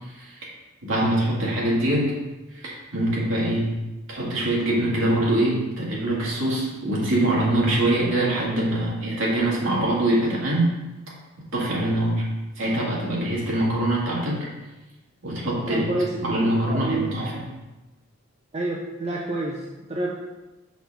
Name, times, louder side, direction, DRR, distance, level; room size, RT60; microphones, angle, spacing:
voice 1, 0.8-2.2 2.6-3.8 4.1-10.7 11.5-12.2 12.6-14.4 15.2-15.9 16.2-17.5, right 1 dB, 70° right, -5 dB, 2.0 m, -23 dB
voice 2, 15.7-16.1 16.7-17.1 18.5-20.1, right 2 dB, 30° right, -2 dB, 0.6 m, -28 dB
6.2 x 6.0 x 3.5 m, 1.1 s
head